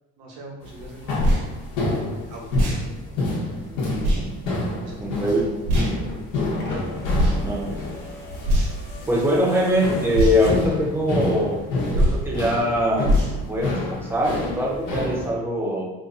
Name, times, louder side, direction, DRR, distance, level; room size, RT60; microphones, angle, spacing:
voice 1, 0.2-2.5 2.7-3.2 4.7-5.5, right 2 dB, 70° right, -1 dB, 1.1 m, -43 dB
sound 1, 0.6-15.3, left 2 dB, 90° left, 1.0 m, -28 dB
sound 2, 1.2-1.4 2.5-2.8 4.0-4.2 5.7-5.9 7.1-7.4 8.4-8.9 10.1-10.4 11.9-12.2 13.0-13.3, equal, 90° right, 1.1 m, -20 dB
voice 2, 3.7-4.4 5.0-5.5 7.3-7.7 9.1-11.6 11.9-13.1 13.5-15.8, equal, 10° right, -4 dB, 0.7 m, -23 dB
sound 3, 6.0-11.0 12.2-12.3, left 1 dB, 35° left, 0.9 m, -37 dB
2.8 x 2.5 x 3.7 m, 1.0 s
cardioid pair, 145°, 30 cm